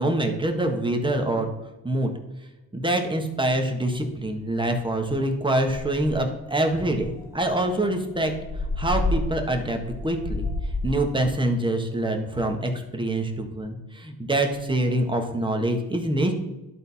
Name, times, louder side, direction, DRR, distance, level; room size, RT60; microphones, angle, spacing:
voice 1, 0.0-1.5 1.8-2.1 2.7-8.3 8.8-10.5 10.8-16.3, right 1 dB, 10° right, 4 dB, 1.4 m, -25 dB
sound 1, 4.2-4.3 4.7-4.9 5.3-5.4 5.7-6.3 6.9-11.1, left 2 dB, 5° left, 1.1 m, -30 dB
11.5 x 4.0 x 4.1 m, 1.1 s
supercardioid pair, 75°, 40 cm